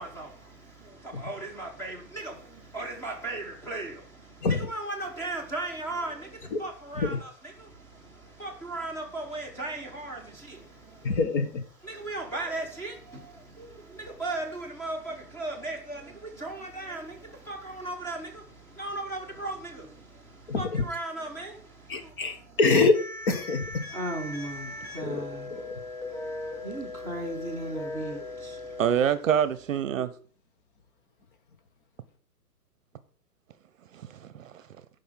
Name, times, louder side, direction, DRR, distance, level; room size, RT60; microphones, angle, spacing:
voice 1, 0.0-11.1 11.8-22.6 23.9-25.7 26.0-28.8, right 2 dB, 5° left, 1.1 m, -37 dB
voice 2, 11.0-11.4 20.5-20.8 21.9-22.9 23.3-23.6 25.0-25.2 25.5-25.8, left 3 dB, 30° left, 1.2 m, -25 dB
sound 1, 22.9-28.9, left 2 dB, 50° left, 5.0 m, -39 dB
voice 3, 28.8-30.1 33.9-34.6, right 8 dB, 55° right, 0.8 m, -26 dB
10.5 x 5.5 x 5.7 m
hypercardioid pair, 160°, 48 cm